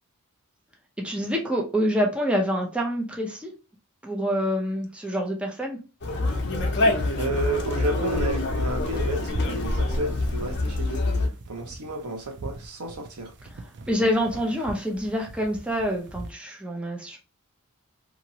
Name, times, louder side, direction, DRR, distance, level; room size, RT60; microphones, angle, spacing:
voice 1, 1.0-3.5 4.0-5.8 13.9-17.2, equal, 5° right, 0.5 m, -26 dB
Conversation, 6.0-11.3, left 2 dB, 50° left, 0.7 m, -26 dB
voice 2, 7.2-11.1 11.5-13.3, right 1 dB, 80° right, 0.8 m, -31 dB
sound 1, 7.4-16.3, right 2 dB, 55° right, 0.5 m, -43 dB
2.8 x 2.5 x 2.8 m
head